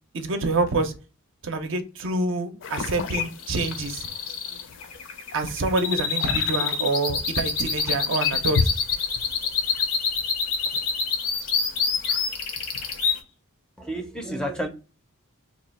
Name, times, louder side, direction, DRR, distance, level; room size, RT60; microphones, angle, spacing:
voice 1, 0.1-0.9 1.4-4.1 5.3-8.7, right 2 dB, 60° right, 0.6 m, -26 dB
sound 1, 2.6-13.2, left 5 dB, 60° left, 0.5 m, -34 dB
sound 2, 3.4-13.1, left 5 dB, 90° left, 0.9 m, -26 dB
voice 2, 13.8-14.7, right 1 dB, 5° left, 0.4 m, -30 dB
2.8 x 2.2 x 4.0 m
head